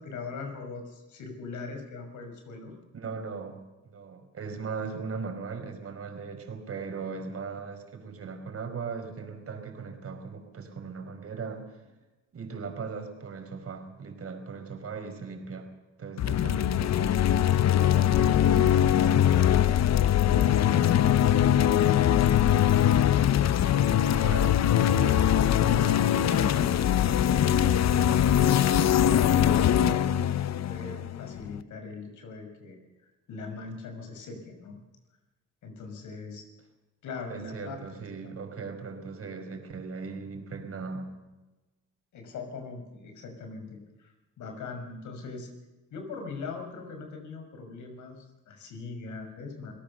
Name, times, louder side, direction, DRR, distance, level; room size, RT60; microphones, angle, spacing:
voice 1, 0.0-2.7 17.8-19.8 20.1-22.8 23.7-24.3 25.2-28.0 28.6-30.1 30.3-32.9 33.3-34.8 35.6-36.4 37.0-37.8 42.1-45.5 45.9-49.7, left 4 dB, 75° left, 5 dB, 6.0 m, -40 dB
voice 2, 2.9-3.6 3.8-11.8 12.3-15.7 16.0-17.2 24.2-24.6 24.9-25.3 37.3-41.1, right 5 dB, 50° right, 6 dB, 4.9 m, -38 dB
sound 1, 16.2-31.6, left 10 dB, 60° left, 0.9 m, -22 dB
28.0 x 17.5 x 6.8 m, 1.1 s
cardioid pair, 90°, 30 cm